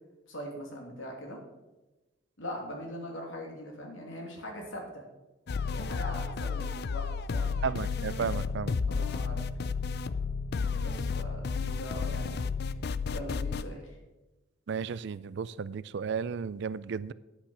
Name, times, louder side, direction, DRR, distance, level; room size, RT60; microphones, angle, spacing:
voice 1, 0.3-1.4 2.4-5.0 5.7-7.5 8.9-9.4 10.8-12.4 13.1-14.0, left 1 dB, 75° left, 2.8 m, -41 dB
sound 1, 5.5-13.6, left 5 dB, 55° left, 0.4 m, -32 dB
voice 2, 7.6-8.7 14.7-17.1, right 6 dB, 60° right, 0.4 m, -34 dB
10.0 x 8.9 x 5.7 m
head